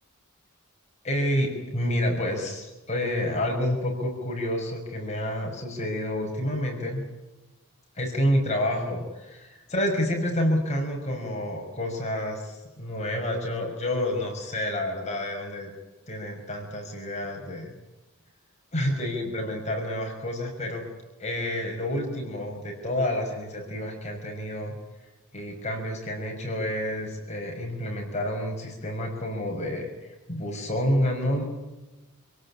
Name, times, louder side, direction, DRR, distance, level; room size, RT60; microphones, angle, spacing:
voice 1, 1.0-7.0 8.0-15.7 16.1-17.7 18.7-20.8 21.2-24.7 25.3-31.4, left 1 dB, 30° left, 1 dB, 6.0 m, -29 dB
27.5 x 18.0 x 10.0 m, 1.1 s
head